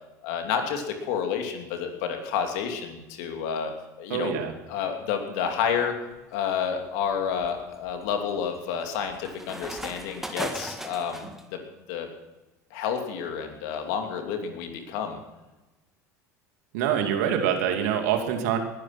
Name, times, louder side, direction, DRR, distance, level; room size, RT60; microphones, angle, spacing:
voice 1, 0.2-3.7 4.0-4.3 4.7-5.9 6.3-11.6 11.9-12.1 12.7-15.2, left 7 dB, 70° left, 4 dB, 2.8 m, -30 dB
voice 2, 4.1-4.5 16.7-18.6, right 9 dB, 75° right, 5 dB, 2.6 m, -25 dB
sound 1, 5.9-6.2 6.8-11.4, right 1 dB, 5° right, 1.9 m, -39 dB
20.0 x 11.0 x 6.0 m, 1.1 s
hypercardioid pair, 75°, 9 cm